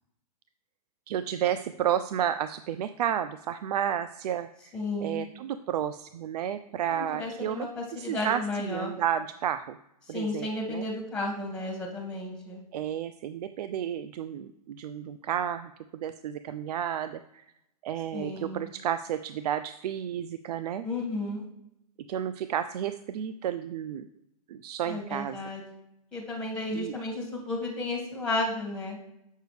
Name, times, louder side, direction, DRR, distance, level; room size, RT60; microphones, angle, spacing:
voice 1, 1.1-9.8 10.1-10.9 12.7-17.4 17.8-20.8 22.1-24.1 24.5-25.4 26.7-26.9, right 10 dB, 75° right, 12 dB, 0.4 m, -32 dB
voice 2, 4.7-5.2 6.9-8.9 10.1-12.6 18.1-18.7 20.8-21.4 24.8-25.6 26.1-29.0, left 2 dB, 5° left, -2 dB, 2.1 m, -33 dB
7.6 x 6.5 x 3.3 m, 0.83 s
hypercardioid pair, 130°, 20 cm